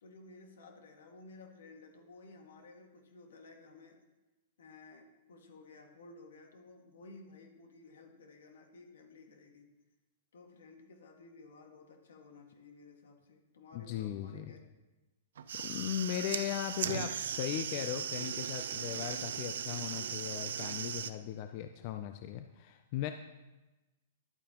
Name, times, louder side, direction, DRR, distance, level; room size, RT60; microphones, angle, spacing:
voice 1, 0.0-4.0 4.6-9.7 10.3-14.6, left 3 dB, 80° left, 3 dB, 1.8 m, -55 dB
voice 2, 13.7-14.5 15.6-23.1, left 11 dB, 40° left, 7 dB, 0.4 m, -38 dB
sound 1, 15.4-21.1, right 8 dB, 75° right, 0.5 m, -38 dB
11.0 x 8.7 x 3.0 m, 1.1 s
hypercardioid pair, 160°, 0 cm